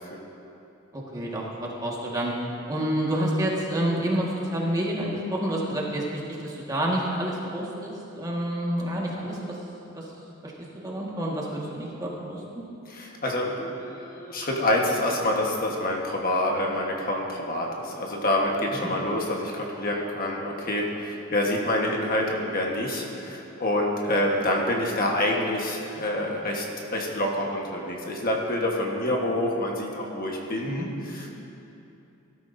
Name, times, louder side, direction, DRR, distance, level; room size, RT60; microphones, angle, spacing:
voice 1, 0.9-2.3 2.7-4.2 4.5-6.0 6.4-9.4 9.9-10.0 10.4-10.5 10.8-12.4 30.7-30.9, right 1 dB, 15° right, -4 dB, 1.7 m, -28 dB
voice 2, 12.9-31.3, left 1 dB, 45° left, -1 dB, 1.4 m, -27 dB
18.5 x 12.5 x 2.7 m, 2.9 s
head